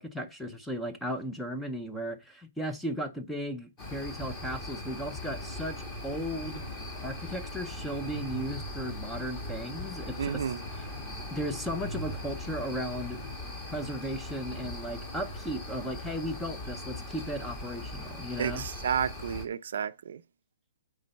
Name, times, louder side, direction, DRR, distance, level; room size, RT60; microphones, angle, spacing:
voice 1, 0.0-6.6 7.0-10.5 10.7-10.9 11.3-13.2 13.7-18.6, equal, ahead, 0.5 m, -36 dB
sound 1, 3.8-19.5, left 1 dB, 15° left, 1.2 m, -39 dB
voice 2, 10.2-10.6 18.4-20.2, right 8 dB, 60° right, 0.5 m, -31 dB
8.4 x 3.8 x 5.2 m
hypercardioid pair, 180°, 0 cm